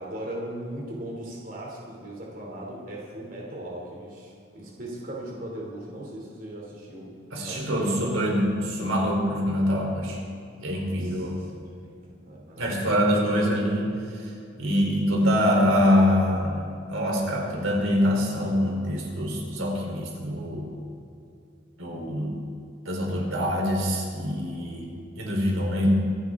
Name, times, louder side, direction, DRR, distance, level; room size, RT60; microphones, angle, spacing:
voice 1, 0.0-7.1 7.4-8.4 10.9-11.5 11.8-13.3, right 1 dB, 45° right, -3 dB, 2.8 m, -38 dB
voice 2, 7.3-10.2 10.6-11.4 12.6-13.9 14.6-16.6 16.9-20.7 21.8-22.4 22.9-25.9, equal, 85° right, -1 dB, 3.7 m, -24 dB
25.5 x 12.0 x 3.7 m, 2.5 s
head